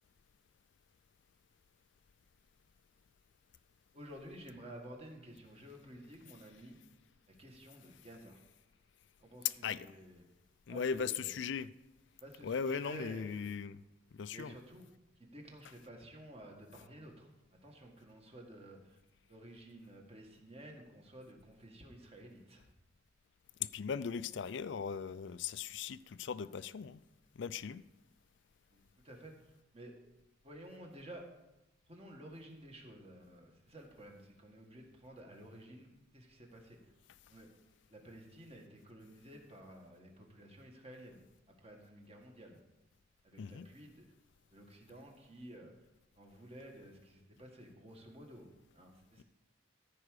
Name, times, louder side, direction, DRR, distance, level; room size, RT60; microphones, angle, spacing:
voice 1, 3.9-6.8 7.3-8.4 9.2-10.2 10.7-11.4 12.2-13.5 14.3-14.9 15.2-17.3 17.6-19.0 19.3-22.6 28.7-29.9 30.4-31.2 31.9-36.8 37.3-37.5 37.9-41.2 41.6-42.6 43.2-44.1 44.5-45.9 46.2-49.2, right 1 dB, 30° right, 1.8 m, -53 dB
voice 2, 10.7-11.7 12.4-13.8 14.1-14.5 23.6-27.0 27.4-27.8 43.4-43.7, left 6 dB, 65° left, 0.4 m, -38 dB
14.5 x 4.9 x 6.6 m
head